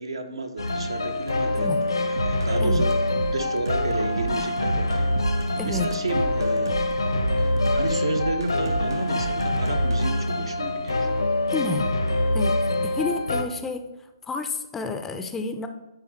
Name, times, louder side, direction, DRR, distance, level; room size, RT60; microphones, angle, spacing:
voice 1, 0.0-2.9 3.3-5.1 5.6-6.7 7.3-11.1, right 2 dB, 75° right, 6 dB, 1.0 m, -31 dB
sound 1, 0.6-13.4, left 1 dB, 75° left, 0.8 m, -25 dB
sound 2, 2.2-10.0, right 4 dB, 60° right, 0.4 m, -33 dB
voice 2, 5.6-5.9 11.5-11.9 12.3-12.5 12.8-13.8 14.2-15.7, left 3 dB, 10° left, 7 dB, 0.4 m, -29 dB
9.5 x 3.5 x 3.2 m, 1.1 s
figure-of-eight pair, 135°, 3 cm